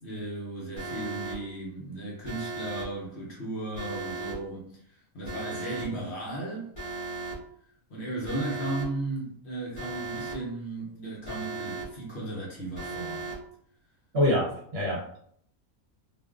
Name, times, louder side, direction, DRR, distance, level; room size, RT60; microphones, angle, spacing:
voice 1, 0.0-6.7 7.9-13.3, right 2 dB, 55° left, -4 dB, 0.9 m, -35 dB
Alarm, 0.8-1.3 2.2-2.8 3.7-4.3 5.2-5.8 6.7-7.3 8.2-8.8 9.7-10.3 11.2-11.8 12.7-13.3, right 3 dB, 30° left, 1.0 m, -36 dB
voice 2, 14.1-15.2, left 1 dB, 55° right, -4 dB, 0.9 m, -26 dB
2.4 x 2.3 x 2.3 m, 0.65 s
omnidirectional pair, 1.5 m